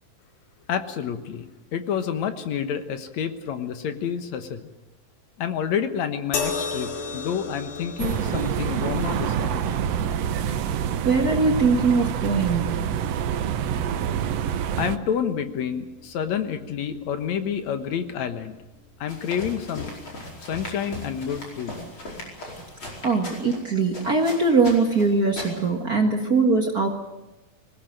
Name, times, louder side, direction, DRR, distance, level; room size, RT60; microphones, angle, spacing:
voice 1, 0.7-1.5 1.7-4.7 5.4-9.7 14.8-18.6 19.0-19.9 20.4-21.8, left 8 dB, 60° left, 9 dB, 2.2 m, -29 dB
sound 1, 6.3-19.7 20.6-20.8, left 4 dB, 90° left, 4.2 m, -38 dB
sound 2, 8.0-15.0, right 9 dB, 80° right, 1.4 m, -26 dB
voice 2, 11.0-12.9 23.0-26.9, right 4 dB, 40° right, 3 dB, 1.5 m, -21 dB
sound 3, 19.1-25.8, left 1 dB, 35° left, 5.6 m, -39 dB
20.5 x 19.0 x 9.1 m, 0.99 s
omnidirectional pair, 4.1 m